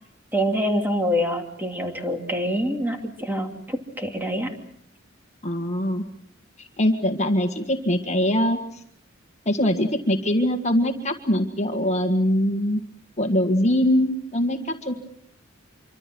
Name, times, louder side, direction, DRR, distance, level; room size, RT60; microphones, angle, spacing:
voice 1, 0.3-4.5, equal, 10° right, 3 dB, 2.8 m, -25 dB
voice 2, 5.4-6.1 6.6-8.8 9.4-12.8 13.2-14.9, left 1 dB, 35° left, 5 dB, 1.8 m, -22 dB
26.0 x 25.0 x 6.2 m, 0.67 s
head